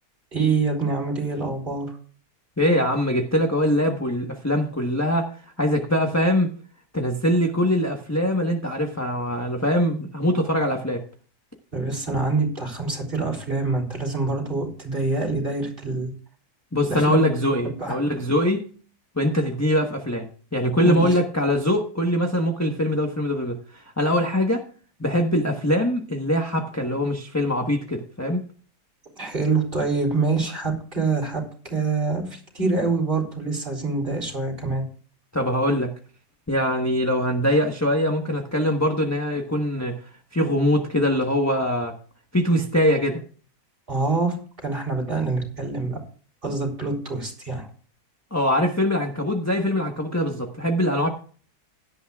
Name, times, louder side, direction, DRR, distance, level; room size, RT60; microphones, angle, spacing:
voice 1, 0.3-1.9 11.7-16.1 16.9-17.2 17.8-18.0 20.8-21.2 29.2-31.4 31.7-34.8 43.9-44.4 44.6-46.0 46.4-47.7, right 3 dB, 35° right, 1 dB, 3.8 m, -25 dB
voice 2, 2.6-5.3 5.6-6.5 6.9-11.0 16.7-18.6 19.2-24.6 25.0-28.4 35.3-35.9 36.5-40.0 40.3-41.9 42.3-43.2 48.3-51.1, equal, 10° left, 2 dB, 1.1 m, -22 dB
16.5 x 11.0 x 2.4 m, 0.41 s
omnidirectional pair, 1.7 m